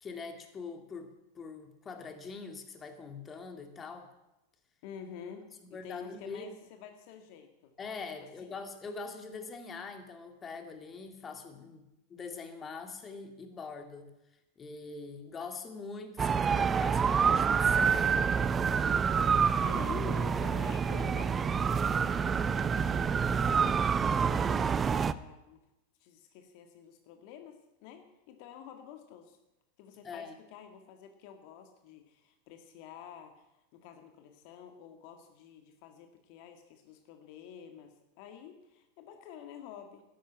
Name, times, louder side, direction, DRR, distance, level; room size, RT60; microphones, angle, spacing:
voice 1, 0.0-4.1 5.6-6.5 7.8-14.1 14.6-18.4 30.0-30.4, left 4 dB, 25° left, 6 dB, 2.2 m, -43 dB
voice 2, 4.8-6.5 6.8-7.7 8.4-8.5 19.6-25.6 26.0-29.4 29.8-33.4 33.7-40.0, left 8 dB, 55° left, 6 dB, 1.8 m, -49 dB
sound 1, 16.2-25.1, right 6 dB, 25° right, 0.6 m, -27 dB
13.0 x 10.5 x 8.7 m, 0.94 s
hypercardioid pair, 95°, 0 cm